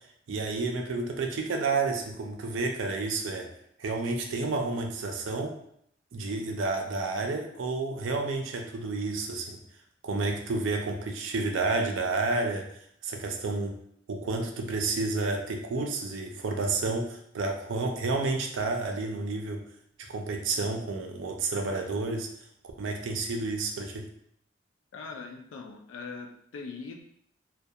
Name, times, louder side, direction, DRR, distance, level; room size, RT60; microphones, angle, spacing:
voice 1, 0.3-3.5 3.8-5.5 6.1-9.6 10.0-12.7 13.0-13.8 14.1-19.6 20.1-22.3 22.8-24.1, right 3 dB, 70° right, 3 dB, 0.4 m, -30 dB
voice 2, 24.9-27.0, left 4 dB, 80° left, 2 dB, 0.4 m, -41 dB
2.3 x 2.2 x 2.7 m, 0.68 s
head